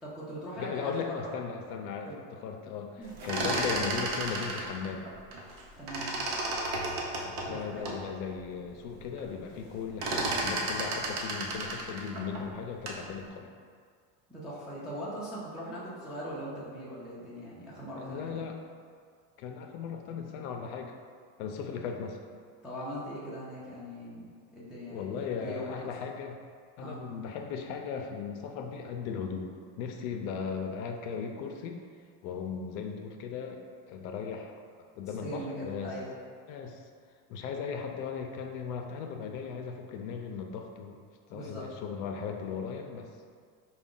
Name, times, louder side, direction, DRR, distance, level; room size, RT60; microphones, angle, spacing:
voice 1, 0.0-1.4 2.0-2.2 3.0-3.1 5.8-6.1 7.4-7.9 14.3-18.4 22.6-25.9 26.8-27.0 35.1-36.1 41.3-41.7, equal, ahead, -9 dB, 0.4 m, -40 dB
voice 2, 0.6-2.9 3.2-5.0 7.2-13.5 18.0-18.6 19.4-20.9 21.4-22.2 24.9-26.4 26.8-29.5 29.8-31.8 32.2-33.6 33.9-34.5 35.0-35.9 36.5-36.8 37.3-41.0 41.3-43.1, left 6 dB, 60° left, 3 dB, 0.5 m, -37 dB
sound 1, 3.1-5.6 5.9-8.0 8.5-8.6 8.9-9.3 9.5-13.1, right 2 dB, 75° right, 1.0 m, -33 dB
4.7 x 2.3 x 3.7 m, 2.1 s
supercardioid pair, 135°, 47 cm